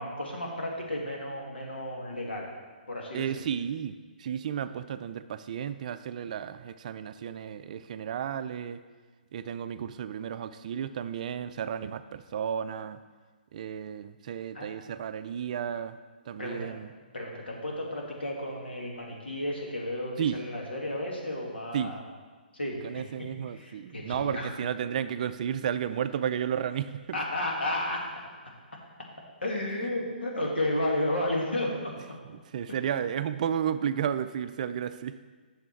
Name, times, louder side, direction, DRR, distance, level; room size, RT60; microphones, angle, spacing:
voice 1, 0.0-2.5 2.9-3.4 14.5-14.7 16.4-16.7 17.1-22.0 22.5-22.8 23.2-24.5 27.1-28.1 29.4-32.2 32.7-32.8, left 1 dB, 90° left, -2 dB, 2.3 m, -32 dB
voice 2, 3.1-8.8 9.3-13.0 13.5-16.0 16.3-16.9 20.2-20.4 21.7-21.9 22.8-27.2 29.8-29.9 32.2-35.2, right 8 dB, 45° right, 12 dB, 0.4 m, -33 dB
8.9 x 6.6 x 4.6 m, 1.4 s
hypercardioid pair, 140°, 5 cm